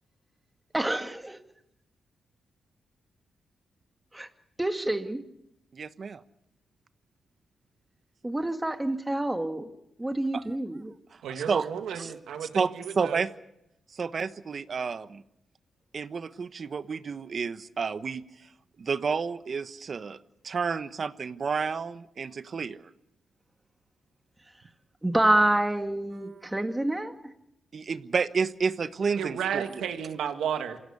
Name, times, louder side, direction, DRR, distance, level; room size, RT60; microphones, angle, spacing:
voice 1, 0.7-1.4 4.1-4.3 4.6-5.2 8.2-9.7 10.0-10.9 25.0-27.1, right 1 dB, 15° right, 2.1 m, -27 dB
voice 2, 5.7-6.2 10.3-10.4 11.3-11.7 11.9-12.1 12.5-13.3 14.0-15.2 15.9-18.2 18.8-20.2 20.4-22.8 27.7-29.8, right 5 dB, 50° right, 1.2 m, -30 dB
voice 3, 11.2-13.2 29.2-30.8, right 8 dB, 90° right, 2.1 m, -33 dB
27.5 x 16.5 x 8.3 m
cardioid pair, 80°, 0 cm